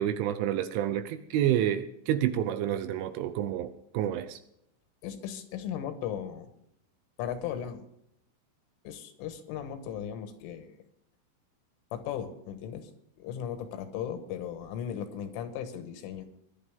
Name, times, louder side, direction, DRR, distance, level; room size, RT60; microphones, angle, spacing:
voice 1, 0.0-4.4, right 11 dB, 80° right, 11 dB, 2.9 m, -29 dB
voice 2, 5.0-6.5 7.2-7.8 8.9-10.8 11.9-12.9 13.2-16.3, left 9 dB, 75° left, 8 dB, 3.7 m, -37 dB
20.5 x 12.0 x 3.6 m, 0.76 s
omnidirectional pair, 5.9 m